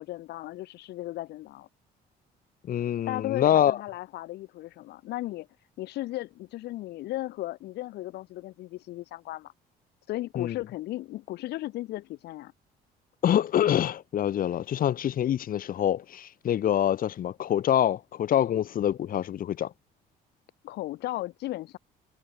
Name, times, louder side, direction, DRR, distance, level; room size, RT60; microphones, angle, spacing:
voice 1, 0.0-1.7 3.1-5.5 5.8-9.5 10.1-12.5 20.6-21.8, left 16 dB, 80° left, 3.7 m, -36 dB
voice 2, 2.7-3.8 10.4-10.6 13.2-19.7, left 10 dB, 55° left, 4.3 m, -25 dB
cardioid pair, 110°, 17 cm